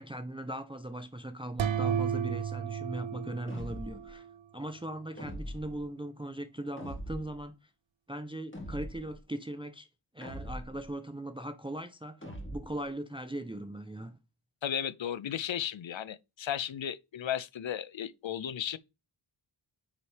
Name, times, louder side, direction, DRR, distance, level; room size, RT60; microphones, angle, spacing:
voice 1, 0.0-4.3 4.5-7.7 8.1-9.9 10.1-12.2 12.5-14.2, right 1 dB, 10° right, 0.6 m, -39 dB
sound 1, 1.6-4.3, right 8 dB, 65° right, 0.7 m, -33 dB
sound 2, 3.5-4.1 5.2-5.9 6.8-7.4 8.5-9.2 10.2-10.9 12.2-12.9, equal, 25° left, 2.1 m, -42 dB
voice 2, 14.6-18.8, left 9 dB, 65° left, 0.6 m, -35 dB
9.0 x 4.2 x 3.3 m
wide cardioid pair, 65°, 49 cm